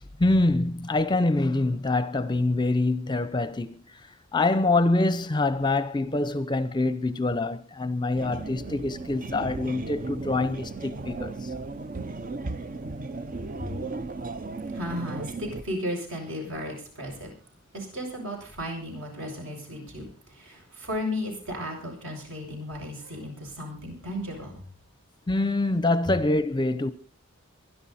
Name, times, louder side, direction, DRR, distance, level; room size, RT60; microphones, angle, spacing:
voice 1, 0.0-4.1 4.3-11.5 25.3-26.9, left 2 dB, 20° left, 0.7 m, -25 dB
sound 1, 8.2-15.6, right 3 dB, 40° right, 0.7 m, -36 dB
voice 2, 14.6-17.3 17.7-24.6, left 1 dB, 65° right, 7.5 m, -35 dB
23.5 x 11.0 x 4.2 m
head